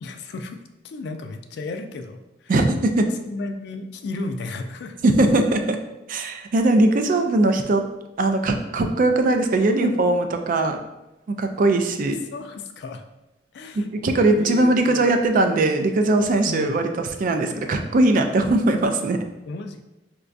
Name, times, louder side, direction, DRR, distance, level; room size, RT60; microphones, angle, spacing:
voice 1, 0.0-2.5 3.2-5.0 12.0-13.0 13.5-13.9 14.3-15.1 16.5-16.8 19.5-19.9, left 2 dB, 65° left, 6 dB, 0.3 m, -34 dB
voice 2, 2.5-3.1 5.0-5.8 6.1-7.9 8.2-10.8 11.4-12.2 13.7-16.9 17.2-19.2, right 2 dB, 50° right, 6 dB, 0.3 m, -20 dB
4.7 x 2.2 x 2.5 m, 0.95 s
head